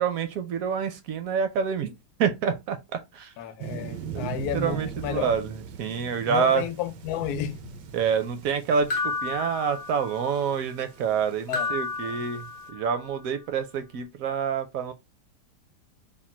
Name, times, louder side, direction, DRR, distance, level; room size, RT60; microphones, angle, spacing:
voice 1, 0.0-1.9 2.2-3.3 4.1-6.6 7.9-14.9, right 7 dB, 70° right, 0.9 m, -27 dB
voice 2, 3.4-5.3 6.3-7.7 11.5-11.7 12.0-12.1, left 10 dB, 75° left, 1.1 m, -32 dB
sound 1, 3.6-12.7, right 7 dB, 90° right, 1.3 m, -41 dB
sound 2, 8.9-10.4 11.5-13.0, left 4 dB, 55° left, 0.6 m, -32 dB
3.6 x 2.2 x 4.2 m
omnidirectional pair, 1.8 m